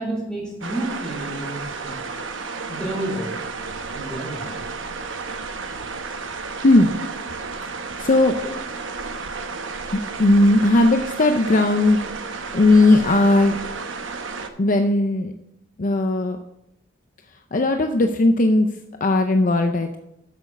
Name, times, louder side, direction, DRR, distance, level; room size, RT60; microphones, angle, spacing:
voice 1, 0.0-2.0 2.7-3.3 3.9-4.7 7.3-7.5 8.3-8.5, right 1 dB, 5° left, -3 dB, 4.2 m, -30 dB
sound 1, 0.6-14.5, right 4 dB, 75° right, 1.0 m, -32 dB
voice 2, 6.6-7.1 8.0-8.3 9.9-12.0 12.5-13.6 14.6-15.3 15.8-16.4 17.3-18.7 19.0-20.0, left 2 dB, 45° left, 6 dB, 0.6 m, -17 dB
8.1 x 7.3 x 6.6 m, 0.83 s
head